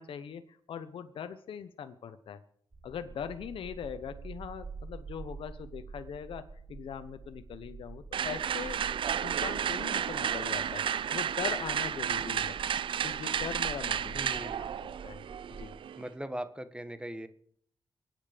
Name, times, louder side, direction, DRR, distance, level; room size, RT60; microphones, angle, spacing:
voice 1, 0.0-2.4 2.8-8.8 9.2-10.8 11.1-12.6 13.0-15.2 15.6-15.7, left 8 dB, 85° left, 10 dB, 0.9 m, -41 dB
sound 1, 2.7-15.7, right 4 dB, 30° right, 1.5 m, -47 dB
sound 2, 8.1-16.1, right 8 dB, 70° right, 0.5 m, -32 dB
voice 2, 14.1-14.7 16.0-17.3, right 1 dB, 10° right, 10 dB, 1.4 m, -40 dB
23.5 x 9.3 x 5.1 m, 0.63 s
cardioid pair, 70°, 9 cm